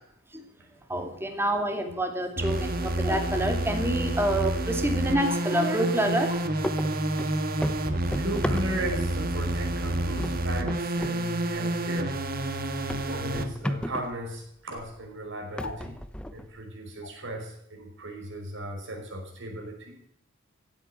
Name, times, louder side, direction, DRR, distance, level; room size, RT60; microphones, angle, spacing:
voice 1, 0.9-6.3, right 1 dB, 10° right, 5 dB, 2.4 m, -27 dB
sound 1, 2.4-13.5, right 1 dB, 45° right, 1.6 m, -29 dB
sound 2, 5.2-5.5 6.2-6.5 8.9-9.1 11.5-11.7 13.1-13.3 14.7-14.9 15.6-15.8 17.0-17.1, left 3 dB, 65° left, 2.0 m, -41 dB
sound 3, 6.0-6.3 6.6-9.1 9.5-9.9 10.2-11.2 11.5-11.6 12.2-12.3 12.9-14.2 14.9-15.0 15.6-16.6, equal, 5° left, 0.8 m, -34 dB
voice 2, 8.1-12.2 13.0-16.0 16.3-20.0, right 1 dB, 60° right, 1 dB, 5.3 m, -36 dB
16.0 x 8.7 x 8.8 m, 0.72 s
head